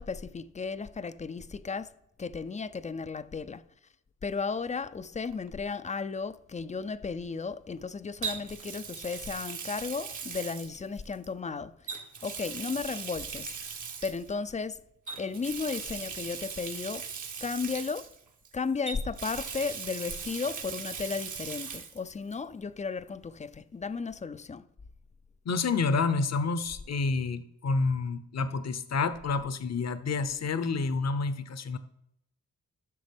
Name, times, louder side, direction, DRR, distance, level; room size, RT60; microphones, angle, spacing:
voice 1, 0.0-1.9 2.2-3.6 4.2-13.5 14.0-14.8 15.2-17.1 17.4-18.1 18.5-24.7, left 5 dB, 20° left, 0.5 m, -34 dB
Water tap faucet, 5.3-5.5 8.2-11.3 11.8-14.3 15.1-18.5 18.9-22.0 22.3-22.4 24.0-24.1, right 6 dB, 60° right, 1.3 m, -39 dB
voice 2, 25.4-31.8, left 4 dB, 50° left, 0.8 m, -29 dB
12.0 x 6.2 x 3.5 m
supercardioid pair, 55°, 35 cm